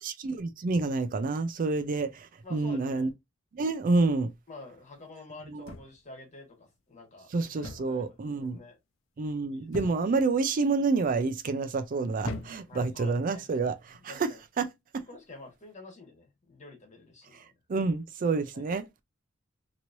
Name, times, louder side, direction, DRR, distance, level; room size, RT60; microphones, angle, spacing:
voice 1, 0.0-3.1 3.5-4.3 5.5-5.6 7.3-8.6 9.2-14.3 14.6-14.7 17.7-18.8, right 3 dB, 45° right, 0.4 m, -28 dB
voice 2, 2.4-3.1 4.5-8.8 9.5-9.8 12.7-13.5 14.1-14.4 15.1-17.5 18.5-18.7, left 2 dB, 35° left, 1.4 m, -48 dB
sound 1, 5.7-6.2 7.6-8.0 8.3-8.7 9.7-10.3 11.0-11.4 12.2-12.8 13.8-14.1, left 2 dB, 90° left, 0.8 m, -41 dB
3.0 x 3.0 x 2.5 m
head